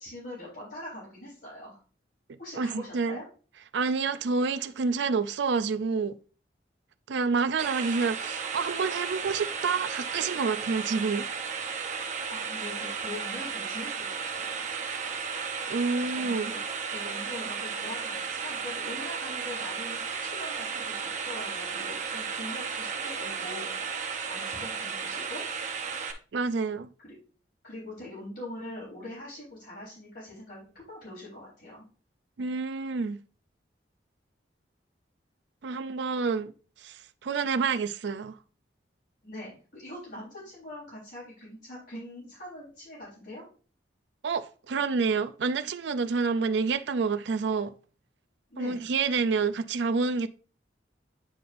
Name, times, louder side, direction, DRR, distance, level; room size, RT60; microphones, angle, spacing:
voice 1, 0.0-1.8 2.4-3.2 12.3-14.6 16.1-23.7 24.3-25.4 27.0-27.1 27.6-31.8 39.2-43.4 48.5-48.8, left 1 dB, 60° left, 3.9 m, -42 dB
voice 2, 2.6-3.2 3.7-6.2 7.1-11.3 15.7-16.5 26.3-26.9 32.4-33.2 35.6-36.5 36.8-38.4 44.2-47.7 48.6-50.3, right 4 dB, 70° right, 0.4 m, -28 dB
sound 1, 7.6-26.1, right 6 dB, 40° right, 0.8 m, -34 dB
9.4 x 5.1 x 2.6 m
head